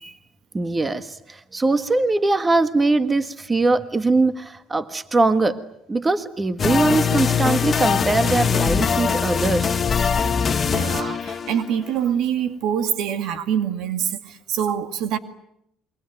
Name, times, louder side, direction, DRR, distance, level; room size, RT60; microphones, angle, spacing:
voice 1, 0.5-5.6 5.9-9.7, right 3 dB, 20° right, 1.5 m, -21 dB
sound 1, 6.6-11.9, left 6 dB, 35° left, 1.5 m, -22 dB
voice 2, 10.6-15.2, right 9 dB, 70° right, 2.1 m, -25 dB
27.5 x 23.5 x 9.2 m
cardioid pair, 100°, 0 cm